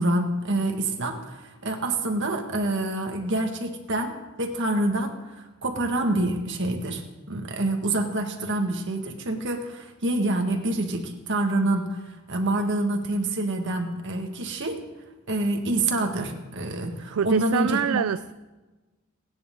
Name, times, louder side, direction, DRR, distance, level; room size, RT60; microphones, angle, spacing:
voice 1, 0.0-12.0 12.3-14.8 15.3-18.0, right 2 dB, 55° right, 1.8 m, -27 dB
voice 2, 17.1-18.3, right 8 dB, 70° right, 0.4 m, -25 dB
29.5 x 10.0 x 3.8 m
head